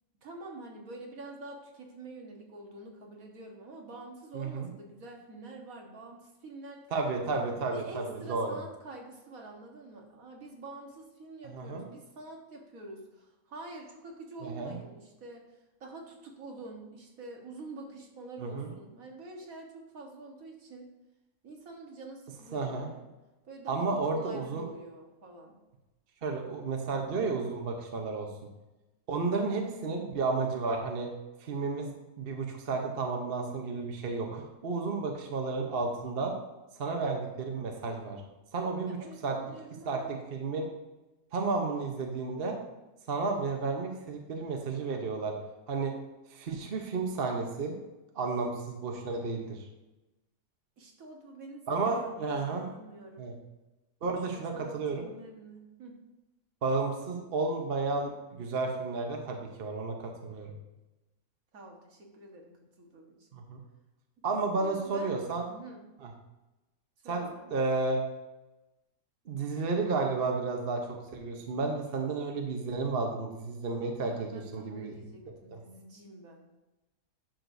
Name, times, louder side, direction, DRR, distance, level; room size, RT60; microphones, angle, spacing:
voice 1, 0.2-7.2 7.7-20.9 21.4-23.1 23.4-25.6 29.5-29.9 38.8-40.2 50.8-51.7 51.9-53.3 54.0-56.0 61.5-63.3 64.6-65.8 67.0-67.5 74.0-76.5, right 2 dB, 65° right, 1 dB, 1.7 m, -47 dB
voice 2, 4.3-4.7 6.9-8.0 8.3-8.6 11.5-11.8 14.4-14.7 18.4-18.7 22.5-22.9 23.7-24.7 26.2-28.3 29.1-31.1 31.4-31.9 32.2-36.3 36.8-38.2 38.5-39.0 39.2-39.4 39.9-40.7 41.3-42.6 43.1-45.3 45.7-45.9 46.3-47.7 48.1-49.6 51.7-52.7 53.2-53.3 54.0-55.1 56.6-60.5 63.3-63.6 64.2-65.4 67.1-68.0 69.3-70.8 71.1-74.9 75.5-75.6, right 3 dB, 45° right, 2 dB, 1.0 m, -32 dB
10.0 x 6.5 x 2.6 m, 1.0 s
omnidirectional pair, 1.6 m